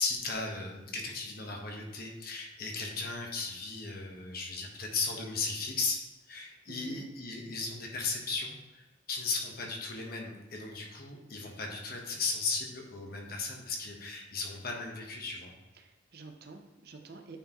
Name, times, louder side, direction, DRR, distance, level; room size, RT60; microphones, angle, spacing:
voice 1, 0.0-6.0 6.3-15.5, left 4 dB, 45° left, 0 dB, 1.2 m, -36 dB
voice 2, 6.7-7.1 15.7-17.4, right 3 dB, 50° right, 5 dB, 0.7 m, -48 dB
9.1 x 4.7 x 3.0 m, 1.1 s
head